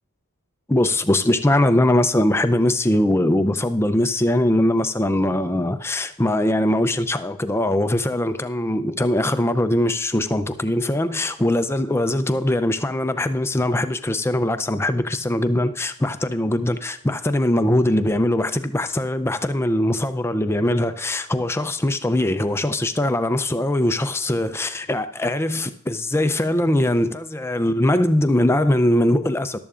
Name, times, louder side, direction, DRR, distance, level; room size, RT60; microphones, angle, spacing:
voice 1, 0.7-29.6, left 1 dB, 10° left, 0.4 m, -21 dB
14.0 x 12.0 x 2.5 m
head